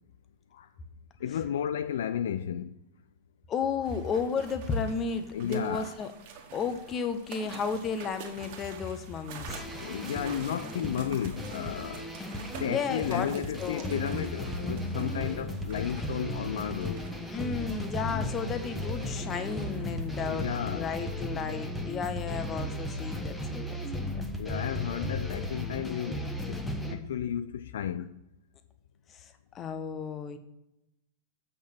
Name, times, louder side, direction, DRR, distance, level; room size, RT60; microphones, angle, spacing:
voice 1, 1.2-2.7 5.3-5.9 9.8-12.1 12.6-17.1 20.3-20.9 24.4-26.6 26.9-28.2, left 9 dB, 60° left, 0.3 m, -33 dB
voice 2, 3.5-6.1 6.5-9.6 12.7-13.9 17.3-24.1 26.9-27.1 29.1-30.4, left 5 dB, 25° left, 0.9 m, -33 dB
sound 1, 3.8-20.7, right 6 dB, 45° right, 1.6 m, -48 dB
sound 2, 9.5-26.9, left 1 dB, 5° left, 1.3 m, -35 dB
8.3 x 5.4 x 6.1 m
figure-of-eight pair, 90°, 0 cm